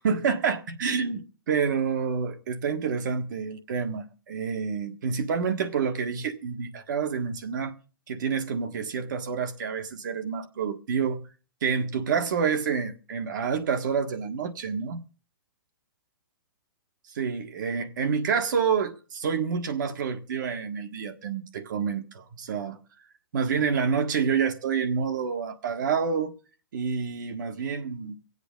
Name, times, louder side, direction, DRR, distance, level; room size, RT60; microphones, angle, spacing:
voice 1, 0.0-7.7 8.1-11.2 11.6-15.0 17.1-22.8 23.3-26.4 26.7-28.1, right 6 dB, 60° right, 1.6 m, -28 dB
24.0 x 8.2 x 3.8 m
hypercardioid pair, 155°, 12 cm